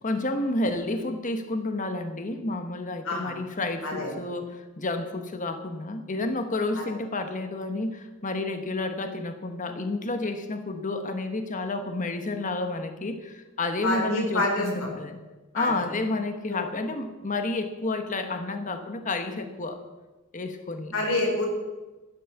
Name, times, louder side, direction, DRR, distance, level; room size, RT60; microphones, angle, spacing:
voice 1, 0.0-15.2 15.5-19.8 20.3-20.9, left 2 dB, 35° left, 7 dB, 1.2 m, -30 dB
voice 2, 13.8-14.9 15.5-15.8 16.5-16.7 20.9-21.5, left 2 dB, 70° left, -1 dB, 4.6 m, -27 dB
12.0 x 10.5 x 7.2 m, 1.2 s
head